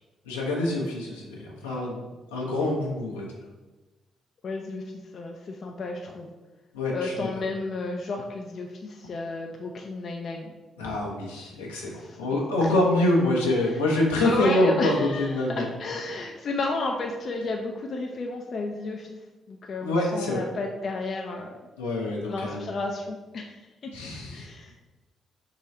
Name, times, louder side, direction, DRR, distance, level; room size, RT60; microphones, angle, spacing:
voice 1, 0.3-2.0 2.3-3.2 6.7-7.3 10.8-15.7 19.8-20.4 21.8-22.6 23.9-24.4, left 1 dB, 85° left, -2 dB, 0.8 m, -25 dB
voice 2, 4.4-4.8 5.1-6.3 6.9-10.5 11.9-12.2 12.6-13.0 13.6-13.8 14.2-19.2 19.5-21.6 22.3-23.6 24.3-24.7, left 3 dB, 55° left, 2 dB, 0.4 m, -32 dB
3.7 x 3.1 x 4.2 m, 1.2 s
hypercardioid pair, 40°, 0 cm